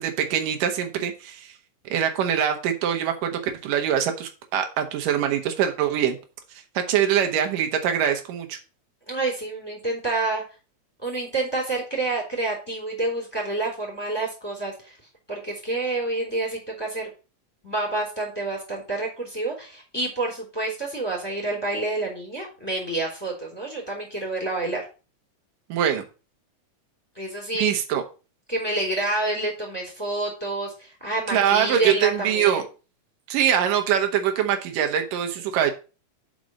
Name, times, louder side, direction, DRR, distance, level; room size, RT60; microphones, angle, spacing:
voice 1, 0.0-1.5 1.9-6.2 6.8-8.6 25.7-26.0 27.5-28.0 31.3-32.6 33.3-35.7, right 9 dB, 80° right, 4 dB, 2.6 m, -23 dB
voice 2, 9.1-10.4 11.0-15.0 15.3-17.1 17.6-24.8 27.1-27.7 28.5-32.7, right 2 dB, 5° left, -1 dB, 3.0 m, -28 dB
6.0 x 5.2 x 6.2 m, 0.33 s
omnidirectional pair, 3.8 m